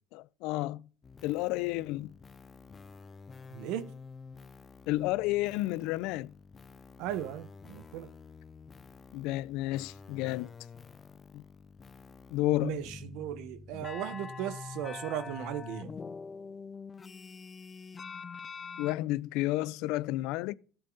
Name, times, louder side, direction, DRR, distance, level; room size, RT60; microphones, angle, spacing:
voice 1, 0.1-0.8 1.2-2.1 4.9-6.3 9.1-10.5 12.3-12.8 18.8-20.5, left 17 dB, 75° left, 0.4 m, -31 dB
sound 1, 1.0-19.0, left 5 dB, 25° left, 0.5 m, -47 dB
voice 2, 3.5-3.9 7.0-8.1 12.6-15.9, right 11 dB, 70° right, 1.0 m, -37 dB
14.0 x 8.1 x 3.9 m
cardioid pair, 135°, 0 cm